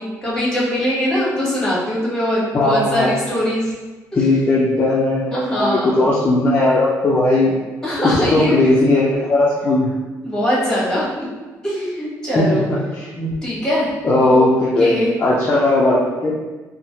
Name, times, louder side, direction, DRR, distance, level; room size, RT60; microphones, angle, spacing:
voice 1, 0.0-3.7 4.1-4.2 5.3-6.0 7.8-8.6 10.2-11.3 11.6-12.6 13.4-13.9 14.3-14.5 14.8-15.1, equal, 10° left, -7 dB, 1.1 m, -21 dB
voice 2, 2.5-3.1 4.2-7.5 8.0-9.9 12.4-13.3 14.0-16.3, left 2 dB, 30° left, -6 dB, 0.4 m, -17 dB
3.1 x 2.0 x 2.7 m, 1.2 s
cardioid pair, 115°, 6 cm